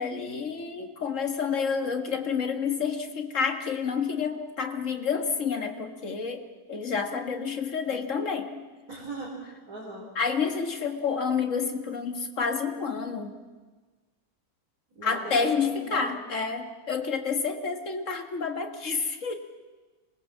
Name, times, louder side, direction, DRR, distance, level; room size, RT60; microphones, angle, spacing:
voice 1, 0.0-8.5 10.2-13.3 15.0-19.4, left 5 dB, 55° left, 5 dB, 2.1 m, -29 dB
voice 2, 8.9-10.1 14.9-16.2, right 2 dB, 85° right, -5 dB, 4.4 m, -39 dB
25.5 x 20.0 x 7.5 m, 1.3 s
omnidirectional pair, 1.6 m